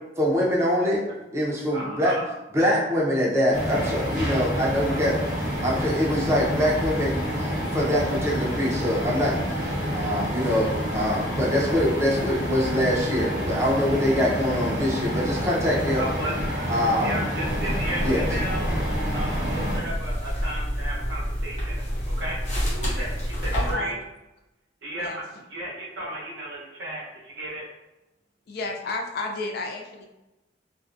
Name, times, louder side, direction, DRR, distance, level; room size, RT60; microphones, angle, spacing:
voice 1, 0.2-1.0 1.3-2.1 2.5-16.1 16.7-17.2 18.0-18.3, equal, 15° right, -5 dB, 0.5 m, -24 dB
voice 2, 1.7-2.3 4.2-4.4 16.0-16.6 17.0-18.7 19.1-22.4 22.7-24.0 24.8-25.2 25.5-27.6, right 1 dB, 85° right, -5 dB, 0.8 m, -34 dB
sound 1, 3.5-19.8, equal, 45° right, 0.8 m, -28 dB
sound 2, 17.4-23.7, equal, 40° left, 0.8 m, -28 dB
voice 3, 23.5-24.0 25.0-25.2 28.5-30.1, left 3 dB, 60° left, 2 dB, 0.4 m, -32 dB
2.5 x 2.1 x 2.4 m, 0.97 s
head